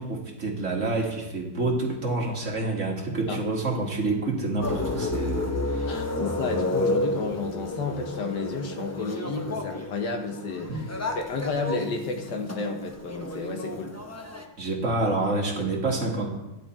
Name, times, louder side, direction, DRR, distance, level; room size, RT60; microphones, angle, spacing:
voice 1, 0.0-6.0 10.7-10.8 14.6-16.3, right 2 dB, 45° right, 0 dB, 2.0 m, -28 dB
sound 1, 4.6-14.4, left 2 dB, 15° left, 0.5 m, -31 dB
voice 2, 5.9-10.8 11.1-14.0, left 4 dB, 75° left, 4 dB, 1.8 m, -31 dB
12.0 x 10.0 x 4.4 m, 0.99 s
omnidirectional pair, 1.9 m